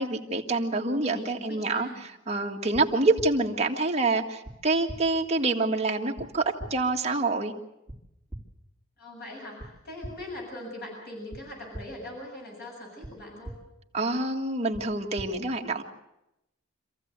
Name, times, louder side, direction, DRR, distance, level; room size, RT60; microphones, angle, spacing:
voice 1, 0.0-7.5 13.9-15.8, right 2 dB, 35° right, 1 dB, 1.9 m, -27 dB
voice 2, 0.9-2.0 9.0-13.5, left 1 dB, 55° left, -1 dB, 7.4 m, -41 dB
sound 1, 2.7-2.8 3.2-3.3 4.4-4.5 4.9-5.0 6.2-6.3 6.6-6.7 7.9-8.0 8.3-8.4 9.6-9.7 10.0-10.1 11.3-11.4 11.7-11.8 13.0-13.1 13.4-13.5 14.7-14.8 15.2-15.3, right 1 dB, 5° right, 3.8 m, -38 dB
26.5 x 15.5 x 8.2 m, 0.88 s
head